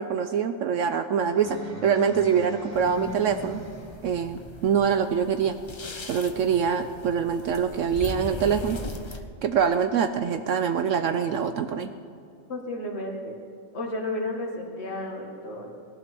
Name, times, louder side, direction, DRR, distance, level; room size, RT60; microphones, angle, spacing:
voice 1, 0.0-3.6 4.0-5.6 6.1-8.8 9.4-11.9, right 7 dB, 70° right, 9 dB, 0.9 m, -24 dB
sound 1, 1.2-4.1, equal, 10° left, 1.7 m, -38 dB
sound 2, 2.7-9.2, left 2 dB, 25° left, 0.7 m, -40 dB
voice 2, 12.5-13.4 13.7-15.7, left 1 dB, 50° left, -1 dB, 2.2 m, -32 dB
17.5 x 11.5 x 6.2 m, 2.5 s
omnidirectional pair, 1.5 m